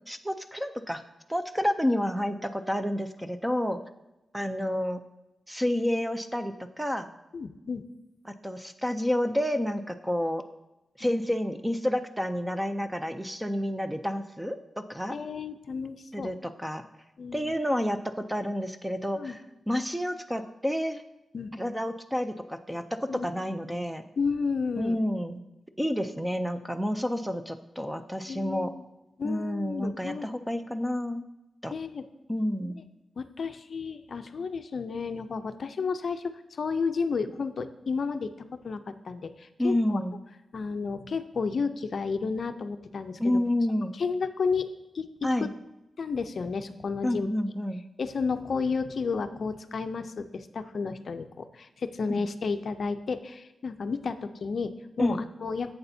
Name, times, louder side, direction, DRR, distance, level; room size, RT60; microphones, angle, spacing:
voice 1, 0.1-1.0 1.3-3.8 4.3-5.0 5.5-7.1 8.4-10.4 11.0-15.1 16.1-16.8 17.3-19.4 19.7-21.0 21.5-24.0 24.8-25.4 25.8-28.7 29.2-31.3 31.6-31.7 32.3-32.8 39.6-40.2 43.2-44.0 45.2-45.5 47.0-47.8 52.1-52.2 55.0-55.2, left 1 dB, 5° right, 8 dB, 0.4 m, -29 dB
voice 2, 7.3-7.8 15.1-16.3 17.2-17.5 19.2-19.4 21.3-21.5 23.1-23.3 24.2-25.0 28.3-28.8 29.2-30.3 31.7-32.0 33.2-40.0 40.5-43.4 44.0-44.7 44.9-45.1 45.4-45.5 46.0-47.3 48.0-55.7, left 5 dB, 50° left, 9 dB, 0.5 m, -32 dB
11.0 x 7.9 x 2.7 m, 0.95 s
wide cardioid pair, 160°, 0 cm